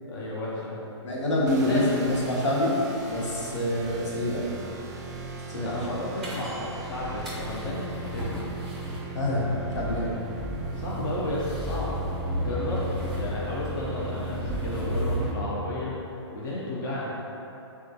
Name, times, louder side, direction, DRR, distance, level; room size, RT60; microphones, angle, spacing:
voice 1, 0.1-0.9 1.6-1.9 3.5-3.7 5.7-8.4 10.7-12.0 12.4-12.8 13.2-16.0 16.3-17.1, left 1 dB, 45° left, -6 dB, 0.5 m, -33 dB
voice 2, 1.0-2.7 3.1-4.4 5.5-5.8 9.1-10.1, left 1 dB, 80° left, -5 dB, 0.9 m, -26 dB
sound 1, 1.5-15.8, right 2 dB, 35° right, 0.4 m, -38 dB
sound 2, 6.2-15.3, equal, ahead, 0.6 m, -34 dB
3.4 x 2.2 x 2.7 m, 2.8 s
hypercardioid pair, 155°, 15 cm